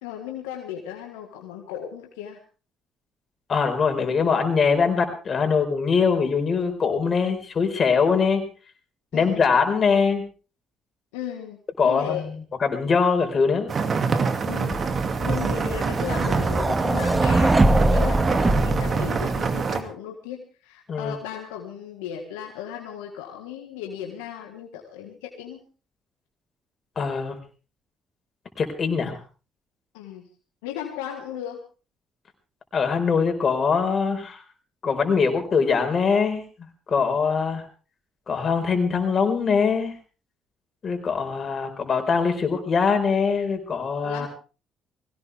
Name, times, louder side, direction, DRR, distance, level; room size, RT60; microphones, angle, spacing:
voice 1, 0.0-2.4 9.1-9.8 11.1-12.3 14.5-14.8 15.2-25.6 29.9-30.3 30.6-31.6 44.0-44.3, left 9 dB, 90° left, 3 dB, 1.7 m, -36 dB
voice 2, 3.5-8.4 9.1-10.2 11.8-12.3 12.6-13.7 20.9-21.1 27.0-27.4 28.6-29.2 32.7-34.4 34.8-36.4 36.9-37.6 38.3-39.9 40.8-44.3, left 5 dB, 50° left, 5 dB, 4.5 m, -22 dB
sound 1, 13.7-19.8, right 5 dB, 50° right, 2.3 m, -26 dB
sound 2, 14.7-19.6, right 2 dB, 25° right, 2.1 m, -22 dB
21.0 x 17.5 x 3.5 m, 0.35 s
supercardioid pair, 60°, 0 cm